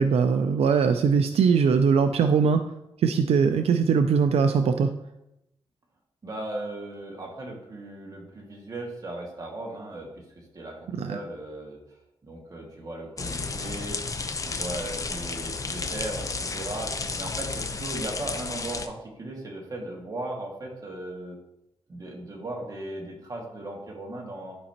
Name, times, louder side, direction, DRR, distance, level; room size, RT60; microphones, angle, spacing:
voice 1, 0.0-2.6 3.0-4.9 11.0-11.2, right 6 dB, 80° right, 8 dB, 0.4 m, -21 dB
voice 2, 6.2-10.8 11.1-11.8 12.2-14.0 14.4-16.9 17.2-21.4 21.9-24.6, right 1 dB, 35° right, -1 dB, 2.0 m, -37 dB
sound 1, 13.2-18.9, left 4 dB, 35° left, 0.6 m, -32 dB
11.0 x 5.2 x 2.9 m, 0.87 s
wide cardioid pair, 115°, 10 cm